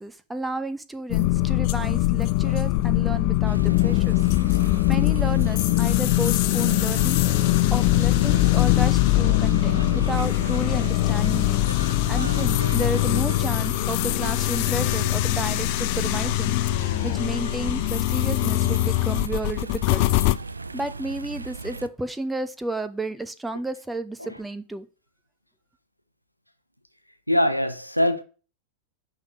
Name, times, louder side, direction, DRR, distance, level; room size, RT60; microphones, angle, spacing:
voice 1, 0.0-4.2 4.5-4.6 4.9-7.2 7.7-11.6 12.1-20.0 20.7-24.9, right 2 dB, 5° right, 0.8 m, -32 dB
sound 1, 1.1-20.4, left 18 dB, 45° left, 0.4 m, -22 dB
sound 2, 3.4-21.9, right 3 dB, 80° right, 0.5 m, -36 dB
voice 2, 27.3-28.2, left 1 dB, 90° left, 0.9 m, -24 dB
10.5 x 3.7 x 6.1 m
figure-of-eight pair, 90°, 0 cm